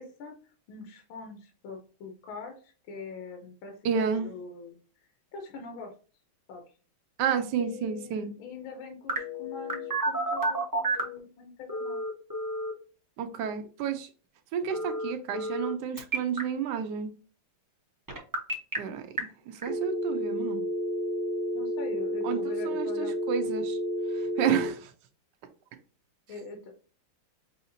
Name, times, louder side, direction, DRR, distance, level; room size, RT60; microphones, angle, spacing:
voice 1, 0.0-5.9 6.5-6.6 7.6-12.0 21.5-23.2 26.3-26.8, left 4 dB, 75° left, 3 dB, 1.6 m, -43 dB
voice 2, 3.8-4.3 7.2-8.3 13.2-14.1 14.5-17.1 18.8-20.6 22.2-22.4 22.6-23.8 24.1-24.9, right 7 dB, 70° right, 6 dB, 1.1 m, -31 dB
Telephone, 9.1-11.2 11.7-12.7 14.7-15.7 16.0-16.4 18.1-18.8 19.2-19.3 19.6-24.7, right 1 dB, 25° right, 0.4 m, -30 dB
5.6 x 2.8 x 2.7 m, 0.37 s
omnidirectional pair, 2.3 m